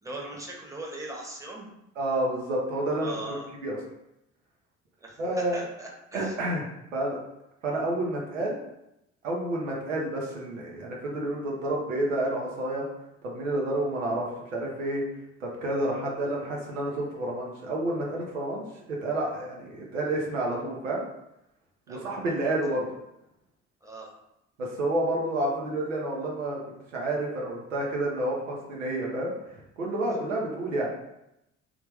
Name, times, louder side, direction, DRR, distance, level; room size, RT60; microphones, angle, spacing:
voice 1, 0.0-1.7 3.0-3.5 5.0-5.2 5.5-6.3 21.9-22.5 23.8-24.1, right 2 dB, 10° right, -2 dB, 1.0 m, -40 dB
voice 2, 2.0-3.8 5.2-5.7 6.1-6.7 6.9-7.2 7.6-8.6 9.2-12.8 13.2-14.3 14.5-15.0 15.4-18.6 19.0-21.0 21.9-22.9 24.6-26.6 26.9-30.9, right 1 dB, 85° right, -2 dB, 0.7 m, -29 dB
3.3 x 2.4 x 3.3 m, 0.85 s
figure-of-eight pair, 50°, 37 cm